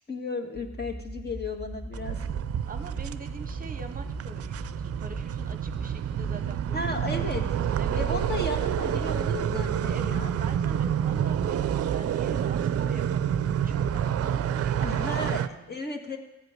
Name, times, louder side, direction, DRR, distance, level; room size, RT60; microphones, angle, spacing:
voice 1, 0.1-2.2 6.7-7.4 7.9-10.3 14.8-16.2, left 2 dB, 35° left, 4 dB, 1.8 m, -34 dB
sound 1, 0.5-15.3, right 1 dB, 10° left, 2.3 m, -40 dB
sound 2, 1.9-15.5, right 10 dB, 50° right, 0.6 m, -28 dB
voice 2, 2.7-6.9 7.6-8.3 9.9-15.8, right 4 dB, 30° right, 7 dB, 1.0 m, -44 dB
14.5 x 5.0 x 9.5 m, 0.99 s
cardioid pair, 90°, 30 cm